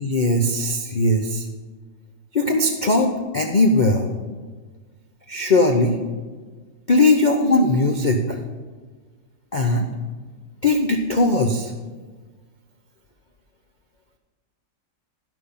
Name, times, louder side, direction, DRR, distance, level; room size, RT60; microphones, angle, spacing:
voice 1, 0.0-1.5 2.3-4.1 5.3-6.0 6.9-8.4 9.5-9.9 10.6-11.7, left 2 dB, 75° left, 2 dB, 0.4 m, -19 dB
11.5 x 6.2 x 7.0 m, 1.4 s
omnidirectional pair, 2.0 m